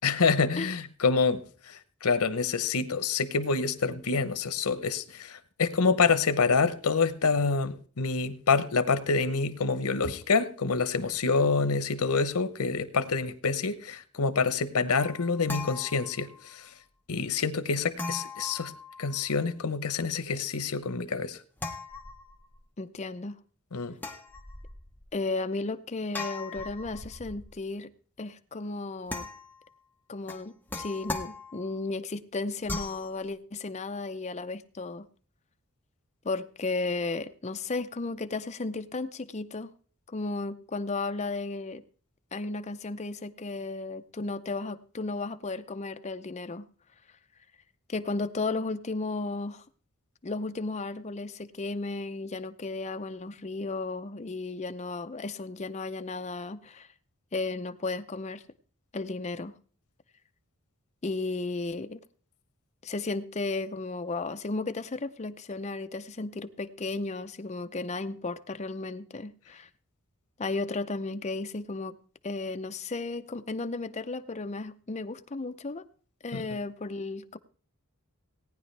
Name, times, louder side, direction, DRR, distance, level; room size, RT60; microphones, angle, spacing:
voice 1, 0.0-1.4 1.7-16.7 17.1-18.7 19.0-21.4 23.7-24.0 76.3-76.5, left 4 dB, 85° left, 0.9 m, -27 dB
sound 1, 15.0-16.5 18.0-19.4 21.6-22.6 24.0-25.0 26.1-27.6 29.1-29.7 30.3-31.8 32.7-33.1, left 3 dB, 10° left, 0.9 m, -39 dB
voice 2, 22.8-23.4 25.1-27.9 28.2-29.3 30.1-35.1 36.2-39.7 40.1-41.8 42.3-46.7 47.9-49.6 50.2-56.9 57.3-58.4 58.9-59.5 61.0-62.0 62.8-69.7 70.4-72.0 72.2-75.8 76.2-77.4, left 3 dB, 30° left, 0.6 m, -34 dB
18.0 x 9.8 x 3.3 m
head